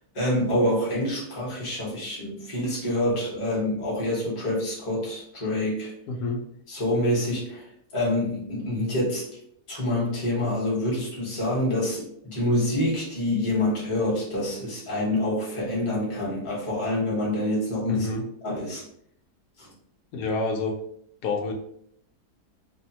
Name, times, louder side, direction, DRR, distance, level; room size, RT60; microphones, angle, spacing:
voice 1, 0.1-5.9 6.7-9.3 9.7-18.1 18.4-18.8 19.6-19.7, left 1 dB, 25° left, -6 dB, 0.8 m, -26 dB
voice 2, 6.1-6.4 17.9-18.2 20.1-20.7 21.2-21.5, left 3 dB, 85° left, 1 dB, 1.1 m, -28 dB
2.9 x 2.1 x 2.7 m, 0.68 s
omnidirectional pair, 1.7 m